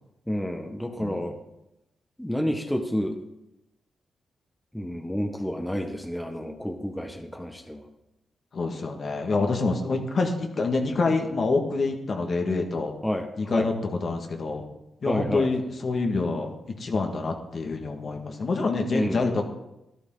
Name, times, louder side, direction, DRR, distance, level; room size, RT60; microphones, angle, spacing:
voice 1, 0.3-1.4 2.2-3.2 4.7-7.8 13.0-13.3 13.5-13.7 15.1-15.5 18.9-19.2, equal, 5° left, 4 dB, 1.6 m, -29 dB
voice 2, 8.5-12.9 13.4-14.6 15.0-19.4, left 3 dB, 55° left, 3 dB, 2.0 m, -27 dB
13.0 x 11.5 x 3.9 m, 0.91 s
cardioid pair, 60°, 0 cm